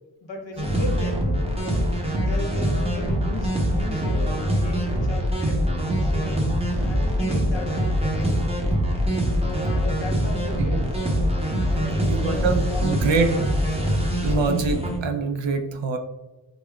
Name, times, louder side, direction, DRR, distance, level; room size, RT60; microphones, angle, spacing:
voice 1, 0.2-1.2 1.6-1.9 2.2-5.6 6.0-6.4 6.7-7.7 8.0-8.7 9.4-11.0 11.6-13.5, left 1 dB, 65° left, 2 dB, 0.8 m, -36 dB
sound 1, 0.6-15.0, equal, 15° right, 0.7 m, -24 dB
voice 2, 10.6-10.9 12.0-13.3 13.9-16.0, right 4 dB, 70° right, 7 dB, 0.5 m, -25 dB
5.0 x 2.1 x 2.3 m, 1.1 s
wide cardioid pair, 45°, 47 cm